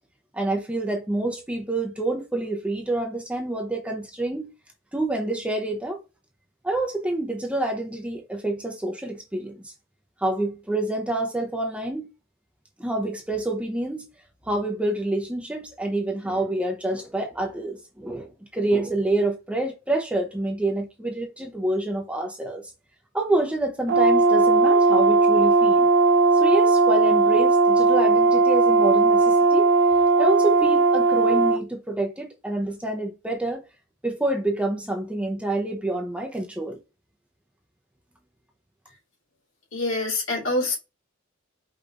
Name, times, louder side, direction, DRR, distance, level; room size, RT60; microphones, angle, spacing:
voice 1, 0.3-4.5 4.9-6.0 6.6-9.7 10.2-12.1 12.8-14.1 14.5-22.6 23.1-25.9 26.3-29.7 30.2-33.6 34.0-36.8, right 2 dB, 5° right, 0.6 m, -27 dB
Brass instrument, 23.9-31.6, right 3 dB, 55° right, 0.5 m, -18 dB
voice 2, 39.7-40.7, left 2 dB, 75° left, 2.5 m, -25 dB
5.0 x 3.2 x 2.4 m
head